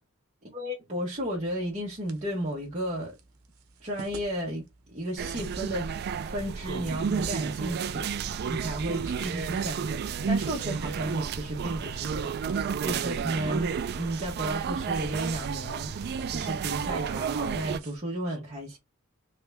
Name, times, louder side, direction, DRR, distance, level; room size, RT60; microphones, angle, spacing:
voice 1, 0.5-3.1 3.8-5.9 6.2-12.5 12.8-18.8, right 1 dB, 35° right, 1.0 m, -33 dB
sound 1, 1.1-18.0, right 3 dB, 85° right, 0.9 m, -51 dB
sound 2, 5.2-17.8, right 6 dB, 50° right, 0.3 m, -31 dB
3.3 x 2.7 x 3.3 m
head